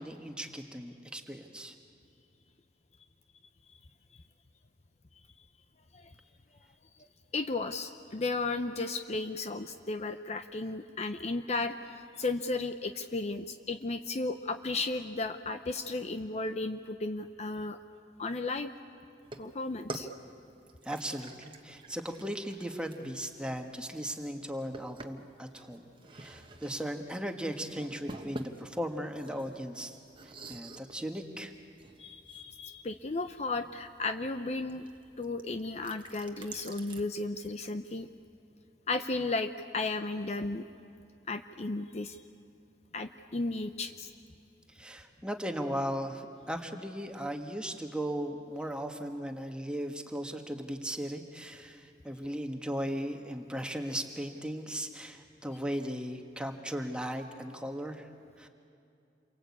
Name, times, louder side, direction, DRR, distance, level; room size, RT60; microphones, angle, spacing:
voice 1, 0.0-1.7 20.8-25.9 26.1-30.0 30.5-31.5 44.7-58.1 58.4-58.5, equal, 5° right, 4 dB, 1.6 m, -37 dB
voice 2, 7.3-17.8 18.2-18.7 19.4-20.1 32.0-34.9 35.2-38.1 38.9-40.7 41.3-42.2 42.9-44.1, left 3 dB, 40° left, 8 dB, 0.7 m, -34 dB
sound 1, 19.2-37.0, right 2 dB, 30° right, 1.3 m, -49 dB
29.0 x 23.5 x 8.6 m, 2.6 s
head